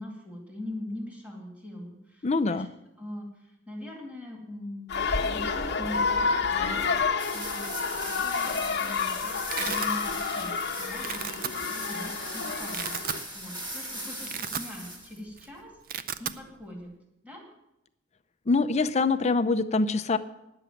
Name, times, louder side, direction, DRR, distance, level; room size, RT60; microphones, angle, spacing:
voice 1, 0.0-2.7 3.0-4.9 5.3-7.0 7.3-13.0 13.3-16.9 17.2-17.4, left 1 dB, 10° right, -1 dB, 2.3 m, -41 dB
voice 2, 2.2-2.7 18.5-20.2, left 3 dB, 35° left, 9 dB, 0.6 m, -24 dB
sound 1, 4.9-13.2, left 5 dB, 60° left, 1.2 m, -29 dB
sound 2, 7.2-15.2, right 1 dB, 25° right, 2.3 m, -38 dB
Domestic sounds home sounds, 8.4-8.8 9.1-9.9 10.4-10.6 10.9-11.5 12.1-12.2 12.6-13.2 13.7-13.8 14.1-15.0 15.3-15.5 15.7-16.4, right 9 dB, 50° right, 0.5 m, -35 dB
9.9 x 6.9 x 9.2 m, 0.89 s
head